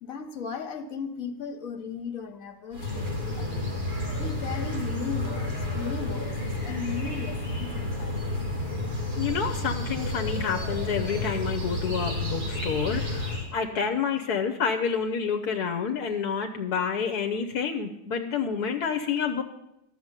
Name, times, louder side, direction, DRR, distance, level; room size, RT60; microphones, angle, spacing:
voice 1, 0.0-3.7 4.2-8.3, left 6 dB, 60° left, 8 dB, 1.6 m, -36 dB
sound 1, 2.7-13.5, left 1 dB, 85° right, 4.9 m, -31 dB
voice 2, 9.2-19.4, left 6 dB, 75° left, 6 dB, 1.3 m, -29 dB
13.0 x 6.9 x 9.7 m, 0.88 s
omnidirectional pair, 1.6 m